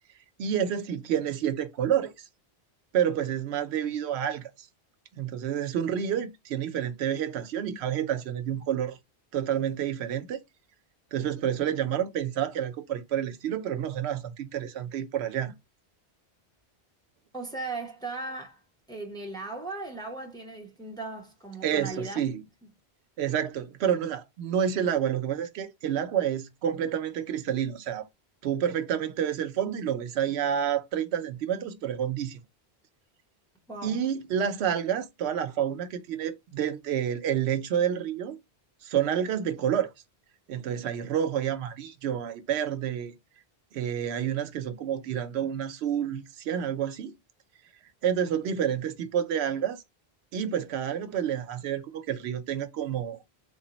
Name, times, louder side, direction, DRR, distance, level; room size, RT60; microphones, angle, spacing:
voice 1, 0.4-2.3 2.9-4.7 5.2-9.0 9.3-10.4 11.1-15.5 21.6-22.4 23.2-28.1 28.4-32.4 33.8-38.4 38.8-39.9 40.5-43.2 43.7-47.1 48.0-49.8 50.3-53.2, right 9 dB, 85° right, 0.8 m, -29 dB
voice 2, 17.3-18.6 18.9-22.2 33.7-34.0, right 2 dB, 5° left, 0.7 m, -37 dB
3.8 x 2.0 x 3.9 m
omnidirectional pair, 1.1 m